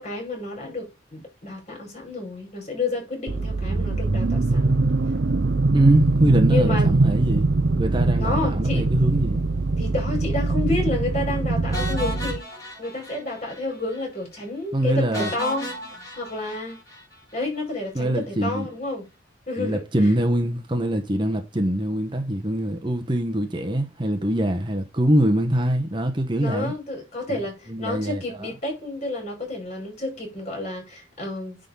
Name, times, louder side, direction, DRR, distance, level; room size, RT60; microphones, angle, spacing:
voice 1, 0.0-4.7 6.3-6.9 8.2-8.9 9.8-12.5 12.8-15.7 16.2-16.8 17.3-19.1 19.5-20.1 26.4-31.6, left 2 dB, 40° left, 5.4 m, -30 dB
sound 1, 3.3-12.4, right 3 dB, 70° right, 0.7 m, -22 dB
voice 2, 5.7-7.5 7.8-9.4 14.7-15.3 17.9-18.7 19.6-26.7 27.3-27.4 27.7-28.5, right 1 dB, 25° right, 1.1 m, -23 dB
sound 2, 11.7-13.6 13.9-14.0 14.4-14.5 15.1-17.4, equal, 20° left, 4.2 m, -34 dB
9.9 x 3.9 x 5.3 m
head